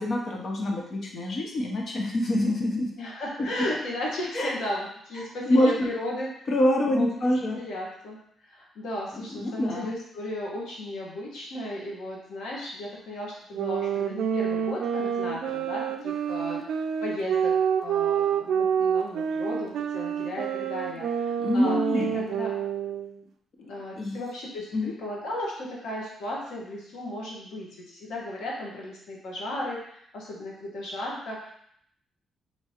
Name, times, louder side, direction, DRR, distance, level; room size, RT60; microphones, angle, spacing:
voice 1, 0.0-2.9 4.3-4.5 5.2-5.9 6.5-7.6 9.1-9.9 21.4-22.2 24.0-24.2 24.7-24.9, left 1 dB, 40° left, 1 dB, 0.7 m, -26 dB
voice 2, 3.0-6.3 6.9-7.2 7.6-22.6 23.6-31.5, left 1 dB, 85° left, -4 dB, 1.3 m, -35 dB
sound 1, 13.5-23.2, right 7 dB, 80° right, 0.3 m, -28 dB
4.7 x 3.0 x 2.9 m, 0.69 s
cardioid pair, 165°, 0 cm